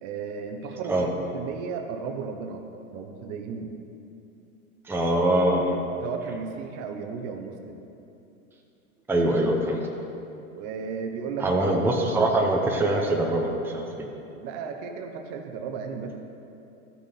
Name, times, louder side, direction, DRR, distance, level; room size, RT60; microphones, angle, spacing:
voice 1, 0.0-2.6 2.9-3.7 6.0-7.8 10.5-11.6 12.1-12.2 14.4-16.2, right 5 dB, 45° right, 4 dB, 1.0 m, -34 dB
voice 2, 4.8-5.8 9.1-9.8 11.4-14.1, right 1 dB, 5° right, 0 dB, 0.8 m, -23 dB
13.5 x 6.2 x 4.2 m, 2.8 s
hypercardioid pair, 110°, 42 cm